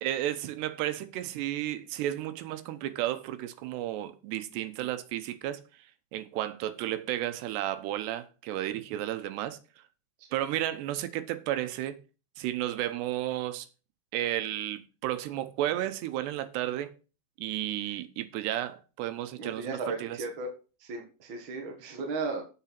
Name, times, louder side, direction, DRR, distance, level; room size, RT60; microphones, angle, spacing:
voice 1, 0.0-5.9 6.1-9.6 10.3-12.0 12.4-13.7 14.1-16.9 17.4-20.2, right 13 dB, 85° right, 3.1 m, -33 dB
voice 2, 19.4-20.5 20.8-22.4, right 3 dB, 55° right, 1.4 m, -35 dB
8.8 x 6.7 x 6.0 m
omnidirectional pair, 4.8 m